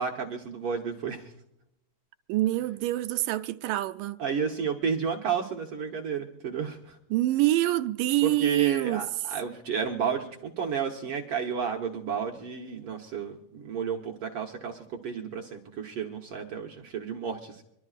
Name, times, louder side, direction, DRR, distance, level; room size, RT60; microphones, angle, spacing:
voice 1, 0.0-1.3 4.2-7.0 8.2-17.6, right 6 dB, 65° right, 1.5 m, -32 dB
voice 2, 2.3-4.2 7.1-9.0, right 15 dB, 80° right, 2.2 m, -26 dB
25.5 x 12.0 x 2.4 m
omnidirectional pair, 3.8 m